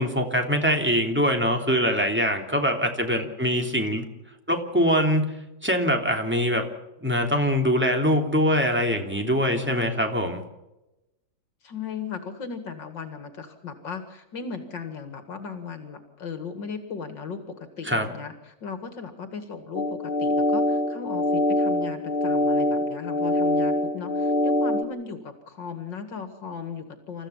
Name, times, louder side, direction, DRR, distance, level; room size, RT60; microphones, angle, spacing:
voice 1, 0.0-4.1 4.5-5.3 5.6-6.7 7.0-10.4 17.8-18.1, equal, 5° right, 3 dB, 3.1 m, -23 dB
voice 2, 11.6-27.3, left 5 dB, 75° left, 8 dB, 2.7 m, -37 dB
sound 1, 19.8-24.8, left 1 dB, 25° left, 1.9 m, -24 dB
29.0 x 14.5 x 7.2 m, 0.96 s
omnidirectional pair, 2.0 m